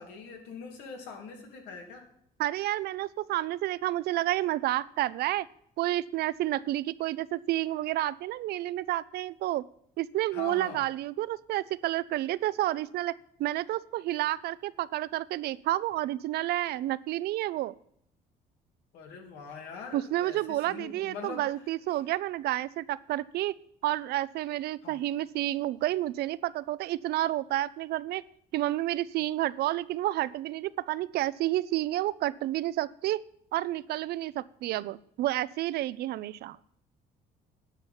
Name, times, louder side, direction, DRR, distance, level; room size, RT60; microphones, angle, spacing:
voice 1, 0.0-2.1 10.3-10.8 18.9-21.7 24.8-25.0, left 5 dB, 85° left, 2 dB, 2.5 m, -43 dB
voice 2, 2.4-5.5 5.8-9.6 10.0-13.1 13.4-17.7 19.9-23.5 23.8-28.2 28.5-33.2 33.5-36.6, right 15 dB, 70° right, 18 dB, 0.5 m, -30 dB
9.8 x 5.7 x 8.0 m, 0.68 s
cardioid pair, 110°, 17 cm